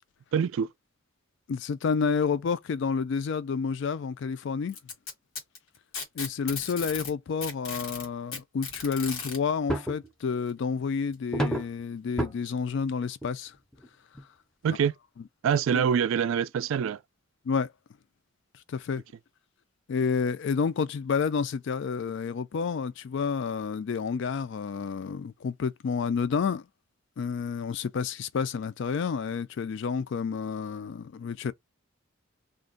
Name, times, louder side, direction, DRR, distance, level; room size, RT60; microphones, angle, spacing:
voice 1, 0.3-0.7 14.6-14.9 15.4-17.0, right 7 dB, 70° right, 0.3 m, -25 dB
voice 2, 1.5-4.8 6.2-13.5 15.7-15.8 17.5-17.7 18.7-19.0 19.9-26.7 27.2-31.5, left 5 dB, 60° left, 0.3 m, -29 dB
Packing tape duct tape, 4.7-7.1 7.4-9.4 10.5-10.6 11.1-11.2 12.1-12.2, left 5 dB, 85° left, 1.3 m, -36 dB
sound 1, 9.7-10.1 11.3-11.8 12.2-12.3 13.2-13.3 13.7-13.9 14.1-14.2 14.8-14.9, right 1 dB, 5° left, 0.5 m, -29 dB
2.5 x 2.1 x 3.7 m
head